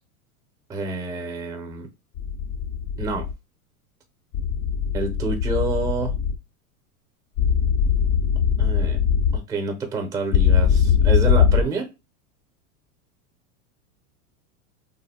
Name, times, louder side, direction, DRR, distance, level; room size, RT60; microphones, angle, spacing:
voice 1, 0.7-1.9 3.0-3.3 4.9-6.2 8.6-9.0 9.3-11.9, right 3 dB, 10° right, 5 dB, 0.4 m, -28 dB
sound 1, 2.2-3.3 4.3-6.4 7.4-9.4 10.3-11.6, left 7 dB, 50° left, 0.5 m, -20 dB
2.6 x 2.0 x 4.0 m, 0.25 s
supercardioid pair, 125°, 46 cm